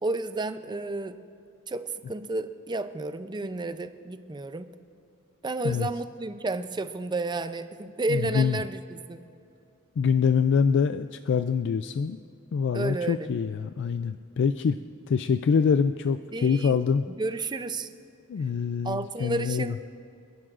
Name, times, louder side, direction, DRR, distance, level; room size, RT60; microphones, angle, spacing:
voice 1, 0.0-1.2 1.7-4.7 5.4-9.3 12.7-13.3 16.3-16.8 17.1-17.9 18.8-19.8, right 2 dB, 20° right, 11 dB, 0.5 m, -31 dB
voice 2, 8.1-8.6 10.0-12.2 12.5-14.8 15.1-17.0 18.3-19.7, left 6 dB, 55° left, 10 dB, 0.3 m, -25 dB
29.5 x 11.0 x 2.5 m, 2.6 s
head